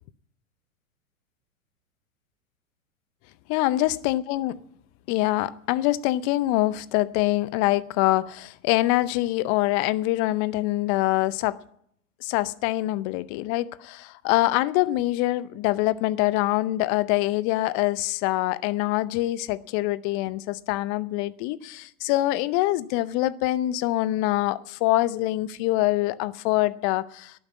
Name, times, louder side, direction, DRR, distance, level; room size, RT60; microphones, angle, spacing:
voice 1, 3.5-4.5 5.1-11.6 12.2-27.3, left 17 dB, 35° left, 18 dB, 0.6 m, -24 dB
11.5 x 9.4 x 9.4 m, 0.69 s
figure-of-eight pair, 100°, 43 cm